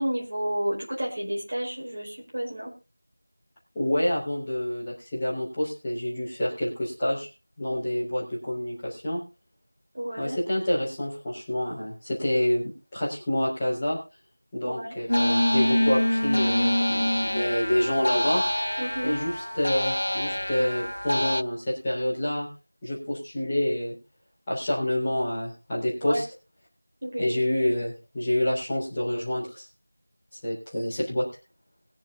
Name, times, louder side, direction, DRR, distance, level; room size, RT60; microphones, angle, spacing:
voice 1, 0.0-2.7 7.7-7.8 9.9-10.4 14.6-15.0 18.8-19.2 26.0-26.2 27.0-27.4, equal, 30° right, -4 dB, 4.8 m, -31 dB
voice 2, 3.7-7.3 7.6-9.2 10.2-14.0 14.5-18.4 19.0-22.5 22.8-24.0 24.5-26.2 27.2-29.7 30.4-31.3, left 1 dB, 5° left, -12 dB, 3.5 m, -27 dB
sound 1, 15.1-21.4, left 1 dB, 80° left, 0.5 m, -25 dB
21.0 x 7.5 x 3.9 m, 0.31 s
figure-of-eight pair, 180°, 0 cm